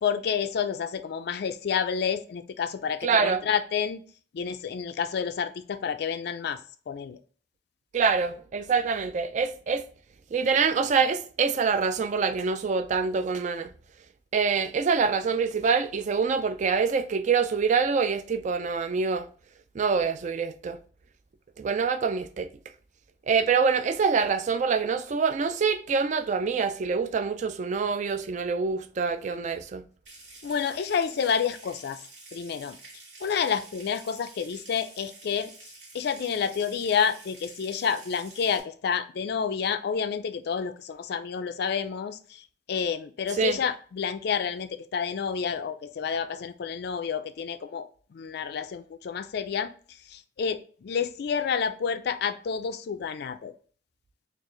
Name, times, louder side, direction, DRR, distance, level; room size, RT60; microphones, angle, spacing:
voice 1, 0.0-4.0 4.3-6.6 6.9-7.2 30.4-32.0 32.3-32.8 33.2-35.5 35.9-49.7 50.1-53.5, left 7 dB, 60° left, 0.4 m, -29 dB
voice 2, 3.0-3.5 7.9-9.8 10.3-13.7 14.3-19.3 19.7-20.8 21.6-22.5 23.3-29.8 43.4-43.6, right 5 dB, 40° right, 0.3 m, -25 dB
Water tap faucet / Sink (filling or washing) / Trickle dribble, 30.1-38.6, right 3 dB, 85° right, 1.6 m, -49 dB
4.5 x 2.5 x 3.0 m
head